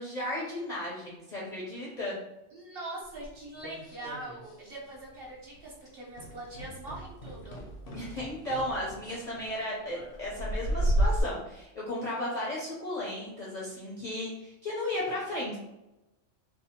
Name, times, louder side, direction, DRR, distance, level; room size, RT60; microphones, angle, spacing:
voice 1, 0.0-2.2 7.9-15.6, left 1 dB, 50° left, -6 dB, 0.5 m, -35 dB
voice 2, 2.5-7.6, right 2 dB, 55° right, -4 dB, 0.9 m, -42 dB
sound 1, 3.2-4.6 4.9-5.2 5.5-5.7 6.1-11.2, right 1 dB, 75° left, 0.9 m, -33 dB
2.6 x 2.1 x 2.8 m, 0.93 s
omnidirectional pair, 1.3 m